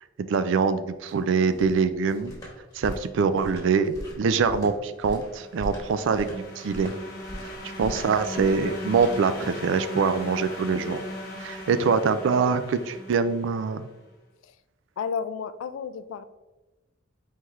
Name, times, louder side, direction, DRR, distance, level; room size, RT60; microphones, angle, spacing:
voice 1, 0.2-2.3 2.7-6.9 7.8-11.0 11.4-13.9, right 5 dB, 70° right, 12 dB, 0.3 m, -24 dB
sound 1, 0.8-9.7, equal, 20° left, 1.1 m, -41 dB
sound 2, 5.2-13.9, left 1 dB, 50° left, 1.2 m, -38 dB
voice 2, 15.0-16.2, left 6 dB, 85° left, 13 dB, 0.3 m, -32 dB
4.5 x 3.6 x 3.0 m, 1.1 s
head